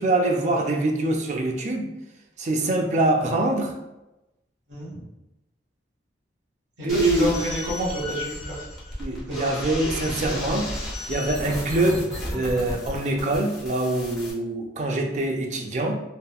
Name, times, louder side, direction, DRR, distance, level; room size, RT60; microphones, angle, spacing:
voice 1, 0.0-1.9 2.4-3.7 6.8-7.3 9.0-10.7 11.1-16.0, right 2 dB, 40° right, 2 dB, 0.4 m, -24 dB
voice 2, 4.7-5.0 6.8-8.7 9.3-9.4 10.0-10.3, equal, 90° right, -7 dB, 1.3 m, -30 dB
sound 1, 6.9-14.3, left 1 dB, ahead, 0.7 m, -34 dB
3.5 x 2.1 x 2.3 m, 0.94 s
head